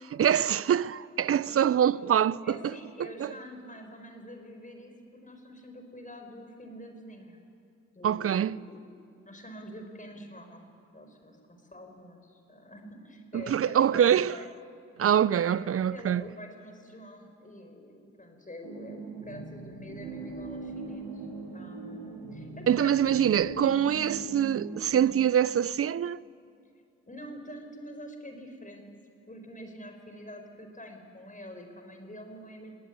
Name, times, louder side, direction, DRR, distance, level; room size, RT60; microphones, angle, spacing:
voice 1, 0.1-2.6 3.2-3.3 8.0-8.6 13.3-14.4 15.0-16.2 22.7-26.2, right 9 dB, 45° right, 0.6 m, -24 dB
voice 2, 2.4-7.4 7.9-8.8 9.2-14.5 15.4-21.3 21.5-23.7 27.1-28.9 29.3-32.7, left 1 dB, 25° left, 5.0 m, -46 dB
sound 1, 18.6-24.9, right 3 dB, 85° right, 3.5 m, -40 dB
20.0 x 19.0 x 9.7 m
hypercardioid pair, 40°, 32 cm